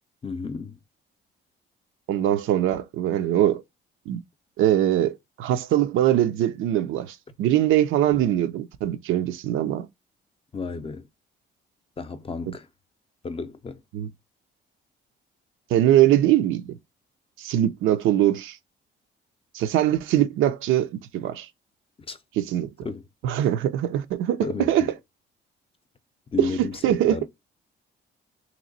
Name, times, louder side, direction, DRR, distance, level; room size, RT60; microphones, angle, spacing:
voice 1, 0.2-0.8 7.5-7.6 10.5-11.1 12.0-12.7 13.2-13.8 22.1-22.2 22.8-23.0 24.4-24.9 26.3-27.3, left 4 dB, 30° left, 0.5 m, -32 dB
voice 2, 2.1-3.6 4.1-4.2 4.6-9.9 13.9-14.1 15.7-16.7 17.4-18.6 19.5-21.5 22.4-22.9 23.2-24.9 26.4-27.2, right 12 dB, 90° right, 0.5 m, -22 dB
3.0 x 2.9 x 3.9 m
cardioid pair, 90°, 20 cm